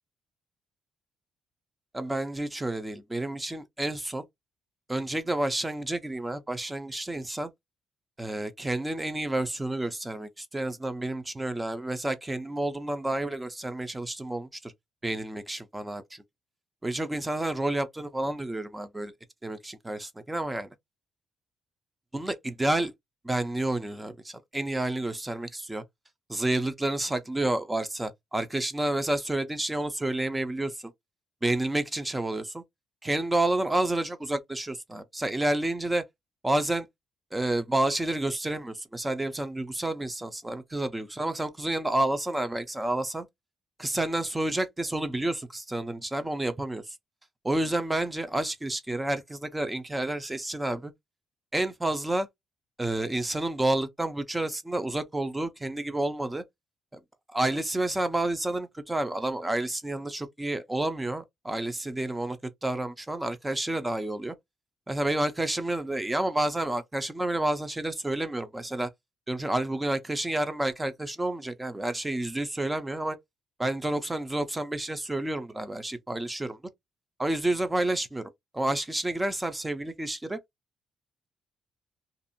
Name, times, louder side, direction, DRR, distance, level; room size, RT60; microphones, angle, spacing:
voice 1, 1.9-4.3 4.9-7.5 8.2-14.7 15.0-16.2 16.8-19.1 19.4-20.7 22.1-22.9 23.2-25.8 26.3-30.9 31.4-32.6 33.0-36.0 36.4-36.9 37.3-43.3 43.8-47.0 47.4-50.9 51.5-52.3 52.8-56.4 56.9-57.0 57.3-64.4 64.9-68.9 69.3-73.2 73.6-76.6 77.2-80.4, right 1 dB, 15° right, 0.6 m, -30 dB
2.6 x 2.4 x 2.6 m
cardioid pair, 90°, 0 cm